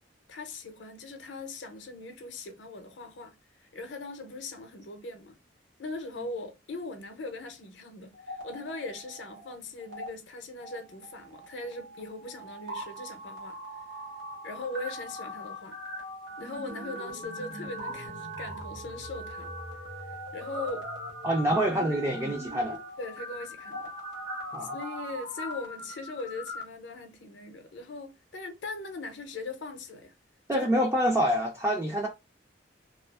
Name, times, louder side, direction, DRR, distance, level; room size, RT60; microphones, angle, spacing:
voice 1, 0.3-5.4 5.8-13.6 14.4-15.8 16.4-19.6 20.1-20.9 23.0-23.9 24.6-30.1 30.5-30.7, left 3 dB, 70° left, 0.6 m, -40 dB
sound 1, 8.1-9.5 9.8-10.1 10.6-26.6, equal, 85° right, 0.9 m, -40 dB
voice 2, 21.2-22.8 24.5-24.8 30.5-32.1, equal, 15° right, 0.3 m, -26 dB
2.7 x 2.4 x 2.2 m
head